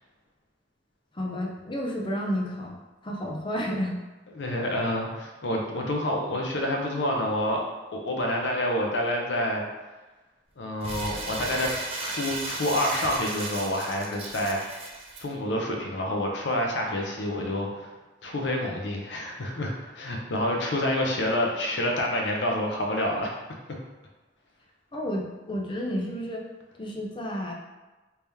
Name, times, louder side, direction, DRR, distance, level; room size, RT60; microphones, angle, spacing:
voice 1, 1.1-2.8 3.0-4.0 24.9-26.4 26.8-27.5, equal, 30° left, -1 dB, 0.5 m, -31 dB
voice 2, 4.3-7.6 7.9-9.6 10.6-11.7 12.0-14.8 15.2-17.9 18.2-23.3, left 1 dB, 80° left, 0 dB, 0.7 m, -28 dB
Crumpling crinkling, 10.8-15.2, right 2 dB, 35° right, 0.5 m, -35 dB
3.4 x 2.9 x 3.4 m, 1.2 s
head